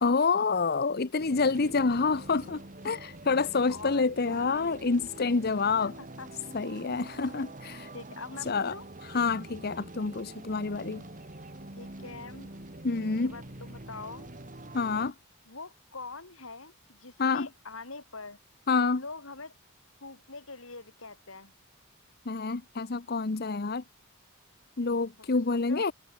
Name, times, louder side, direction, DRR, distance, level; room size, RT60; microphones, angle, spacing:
voice 1, 0.0-5.9 6.5-7.9 8.5-8.7 9.0-11.0 12.8-13.3 14.7-15.1 17.2-17.5 18.7-19.0 22.3-23.8 24.8-25.9, left 4 dB, 50° left, 0.8 m, -28 dB
sound 1, 1.2-15.1, right 1 dB, 40° right, 2.8 m, -45 dB
voice 2, 3.7-4.7 5.8-6.3 7.9-8.9 11.8-12.5 12.9-14.3 15.5-18.4 18.9-19.5 20.0-21.5 25.3-25.8, left 3 dB, 70° left, 4.2 m, -44 dB
head